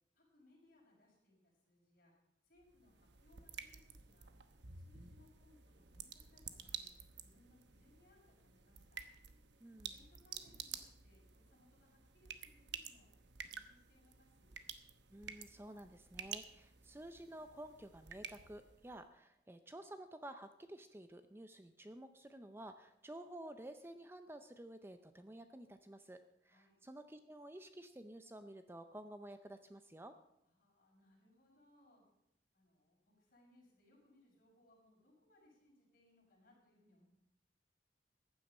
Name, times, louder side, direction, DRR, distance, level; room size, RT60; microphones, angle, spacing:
voice 1, 0.1-2.1 2.4-4.3 4.7-6.9 7.2-9.0 9.9-13.1 13.4-14.5 26.5-26.7 30.4-32.1 32.5-37.1, left 1 dB, 50° left, -3 dB, 6.0 m, -70 dB
sound 1, 2.6-19.0, right 8 dB, 85° right, 1.0 m, -52 dB
voice 2, 9.6-9.9 15.1-30.2, right 1 dB, 15° right, 9 dB, 0.5 m, -52 dB
15.0 x 9.7 x 5.4 m, 0.83 s
head